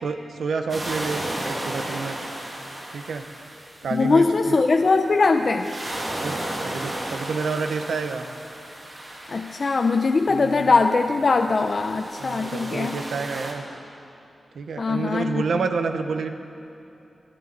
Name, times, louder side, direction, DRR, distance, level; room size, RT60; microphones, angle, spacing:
voice 1, 0.0-2.3 2.9-3.2 3.8-4.6 6.2-8.3 10.3-10.7 12.2-13.6 14.5-16.3, right 4 dB, 90° right, 7 dB, 0.9 m, -29 dB
sound 1, 0.7-4.5 5.5-10.5 11.4-13.5, right 1 dB, 30° right, 2.1 m, -34 dB
voice 2, 3.9-5.7 9.3-13.0 14.8-15.6, left 3 dB, 45° left, 5 dB, 0.5 m, -21 dB
28.0 x 11.5 x 4.0 m, 2.8 s
wide cardioid pair, 115°, 0 cm